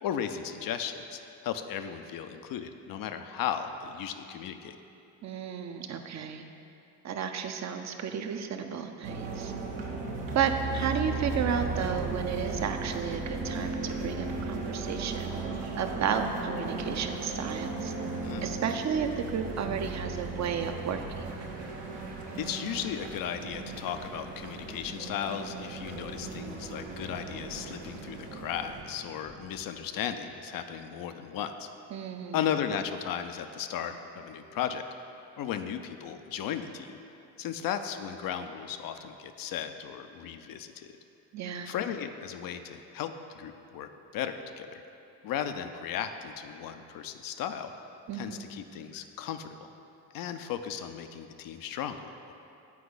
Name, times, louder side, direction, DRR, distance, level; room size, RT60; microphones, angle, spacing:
voice 1, 0.0-4.8 18.2-18.5 22.4-31.7 32.3-34.8 35.4-37.0 37.4-40.9 41.7-44.8 45.2-47.7 48.1-49.7 50.1-52.3, left 9 dB, 50° left, 8 dB, 0.5 m, -35 dB
voice 2, 5.2-6.4 7.0-9.5 10.3-15.3 15.8-17.9 18.4-21.2 31.9-32.4 41.3-41.7 48.1-48.5, right 7 dB, 35° right, 6 dB, 0.6 m, -32 dB
sound 1, 9.0-28.8, right 3 dB, 65° right, 1.0 m, -36 dB
sound 2, 11.3-29.7, right 2 dB, 85° right, 1.2 m, -48 dB
8.3 x 4.6 x 3.9 m, 2.8 s
hypercardioid pair, 50°, 47 cm